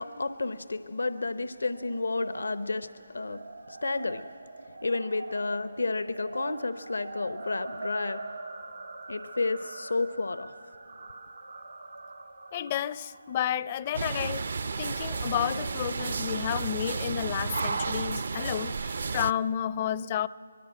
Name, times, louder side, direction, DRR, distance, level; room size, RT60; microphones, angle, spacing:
voice 1, 0.0-4.3 4.8-8.3 9.1-10.5, left 3 dB, 80° left, 12 dB, 0.8 m, -31 dB
sound 1, 1.6-14.1, right 3 dB, 85° right, 2.8 m, -44 dB
voice 2, 12.5-20.3, left 10 dB, 30° left, 18 dB, 0.5 m, -31 dB
sound 2, 13.9-19.3, right 4 dB, 60° right, 0.6 m, -32 dB
24.5 x 21.0 x 7.7 m, 2.8 s
figure-of-eight pair, 155°, 0 cm